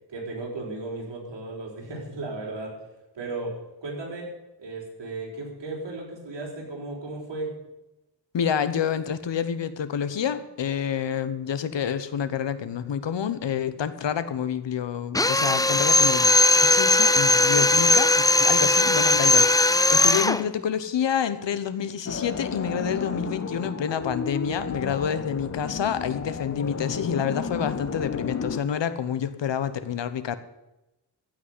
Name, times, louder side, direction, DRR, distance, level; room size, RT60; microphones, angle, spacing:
voice 1, 0.1-2.7 3.1-3.5 3.8-4.3 4.6-7.5, right 2 dB, 80° right, -2 dB, 5.1 m, -35 dB
voice 2, 8.3-16.3 16.6-30.4, left 8 dB, 80° left, 13 dB, 1.1 m, -28 dB
Drill, 15.1-20.4, left 2 dB, 10° left, 0.4 m, -19 dB
sound 1, 22.1-28.6, left 5 dB, 35° left, 1.0 m, -32 dB
15.5 x 6.2 x 9.9 m, 0.97 s
wide cardioid pair, 125°, 43 cm